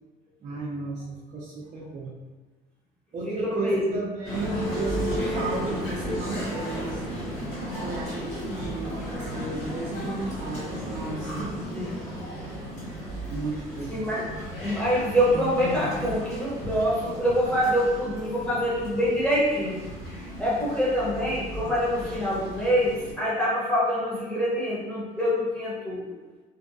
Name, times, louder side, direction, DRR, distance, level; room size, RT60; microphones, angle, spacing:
voice 1, 0.4-2.1 3.1-3.7 3.9-7.0 7.8-11.5 13.3-13.9, right 3 dB, 45° right, -7 dB, 0.5 m, -34 dB
Male speech man speaking, 4.2-23.1, equal, 90° left, 1.5 m, -34 dB
voice 2, 13.9-14.3 14.6-19.8 20.4-26.1, equal, 5° left, -7 dB, 0.8 m, -25 dB
2.6 x 2.2 x 2.5 m, 1.3 s
cardioid pair, 110°, 17 cm